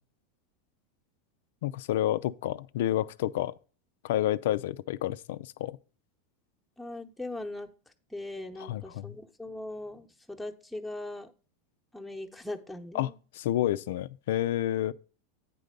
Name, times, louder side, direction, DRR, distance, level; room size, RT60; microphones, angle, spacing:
voice 1, 1.6-3.5 4.0-5.8 8.6-9.2 12.9-14.9, left 13 dB, 75° left, 0.4 m, -29 dB
voice 2, 6.8-7.7 8.1-11.3 11.9-13.2, left 2 dB, ahead, 0.9 m, -40 dB
9.1 x 3.9 x 6.6 m
hypercardioid pair, 115°, 0 cm